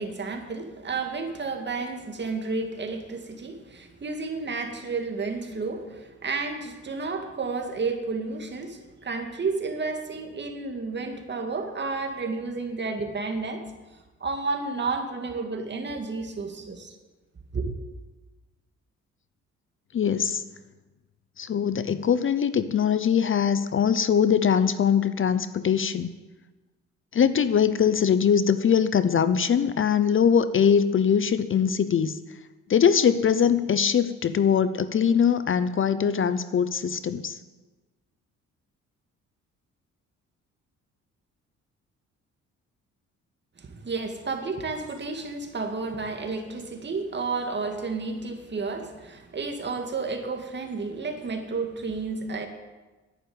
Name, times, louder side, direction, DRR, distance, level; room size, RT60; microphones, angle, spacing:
voice 1, 0.0-13.6 14.2-16.9 17.5-17.7 43.6-52.5, right 4 dB, 35° right, 4 dB, 2.2 m, -31 dB
voice 2, 19.9-20.4 21.4-26.1 27.1-32.2 32.7-37.4, left 7 dB, 45° left, 13 dB, 0.7 m, -22 dB
11.0 x 10.0 x 8.8 m, 1.2 s
cardioid pair, 90°, 30 cm